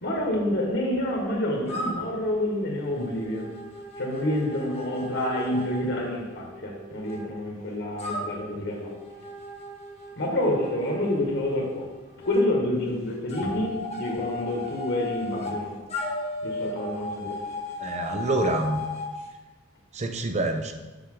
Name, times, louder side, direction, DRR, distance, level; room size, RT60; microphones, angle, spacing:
voice 1, 0.0-3.5 4.0-8.9 10.2-11.9 12.2-15.7 16.4-17.4, left 1 dB, 60° left, -1 dB, 1.6 m, -28 dB
sound 1, 1.7-7.2 8.0-12.4 13.3-15.6 15.9-19.1, left 2 dB, 35° left, 1.3 m, -36 dB
voice 2, 17.8-18.8 19.9-20.7, right 2 dB, 35° right, 6 dB, 0.7 m, -27 dB
7.2 x 7.0 x 3.9 m, 1.2 s
head